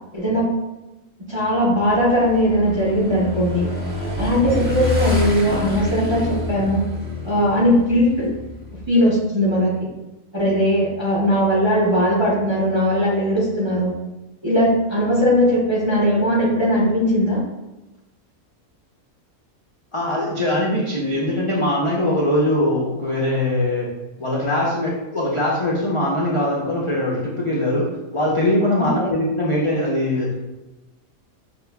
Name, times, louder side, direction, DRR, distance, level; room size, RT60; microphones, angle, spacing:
voice 1, 0.1-0.5 1.3-3.7 4.2-6.8 7.2-8.3 8.9-9.7 10.3-13.9 14.4-17.4 29.0-29.1, equal, 35° right, -5 dB, 0.4 m, -19 dB
Motorcycle / Engine, 1.9-8.9, left 3 dB, 15° left, 0.8 m, -27 dB
voice 2, 19.9-23.9 24.2-30.3, left 1 dB, 55° left, -6 dB, 0.3 m, -21 dB
6.7 x 2.3 x 2.2 m, 1.0 s
omnidirectional pair, 1.5 m